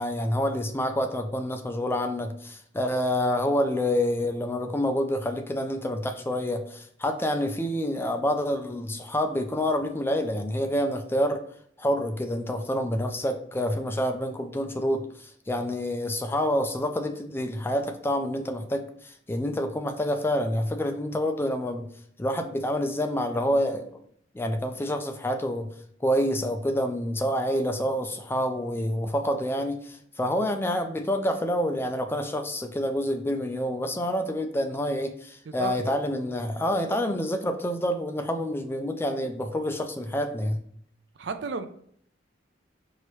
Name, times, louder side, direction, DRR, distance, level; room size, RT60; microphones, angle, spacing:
voice 1, 0.0-11.4 11.8-21.9 22.2-24.0 24.3-25.7 26.0-40.6, equal, 15° left, 0.4 m, -27 dB
voice 2, 35.5-35.9 41.2-41.7, right 4 dB, 70° right, 0.4 m, -33 dB
4.7 x 2.8 x 3.1 m
head